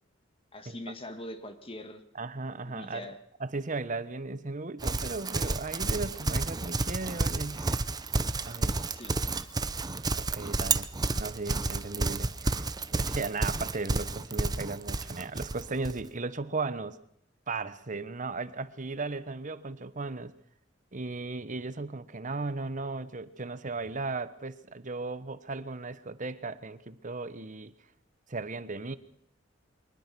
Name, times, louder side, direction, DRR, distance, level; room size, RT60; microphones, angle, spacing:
voice 1, 0.5-2.0 2.7-3.2 8.9-9.3, left 1 dB, 30° left, 8 dB, 2.0 m, -42 dB
voice 2, 2.1-3.1 3.4-7.8 8.5-8.8 9.9-10.9 11.2-12.7 12.9-17.0 17.5-20.3 20.9-27.7 28.3-29.0, right 3 dB, 40° right, 14 dB, 1.1 m, -36 dB
Livestock farm animals working animals, 4.8-16.0, right 3 dB, 20° right, 0.7 m, -30 dB
23.5 x 20.0 x 6.1 m, 0.69 s
head